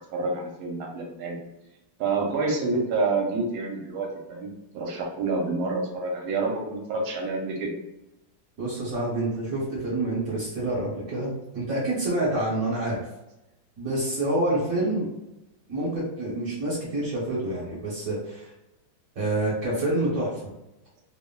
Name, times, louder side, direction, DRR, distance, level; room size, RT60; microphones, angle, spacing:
voice 1, 0.1-1.4 2.0-7.7, right 3 dB, 80° right, 1 dB, 1.4 m, -28 dB
voice 2, 8.6-13.1 13.8-15.1 15.7-18.5 19.1-20.5, right 1 dB, 55° right, -7 dB, 1.1 m, -27 dB
3.4 x 2.0 x 2.2 m, 0.94 s
omnidirectional pair, 2.2 m